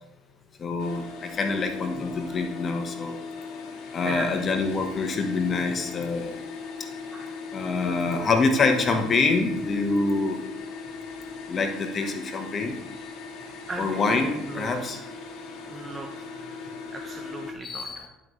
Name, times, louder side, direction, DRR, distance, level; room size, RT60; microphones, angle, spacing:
voice 1, 0.6-3.2 3.9-6.4 7.5-10.4 11.5-12.8 13.8-15.0 17.6-18.1, left 3 dB, 40° left, 5 dB, 1.2 m, -26 dB
sound 1, 0.8-17.5, left 4 dB, 65° left, 1.4 m, -38 dB
voice 2, 1.9-2.4 4.0-4.4 7.1-7.3 12.0-12.1 13.7-14.7 15.7-16.2 16.9-18.0, right 2 dB, 25° right, 3 dB, 0.8 m, -37 dB
10.5 x 5.5 x 3.2 m, 0.96 s
supercardioid pair, 90°, 0 cm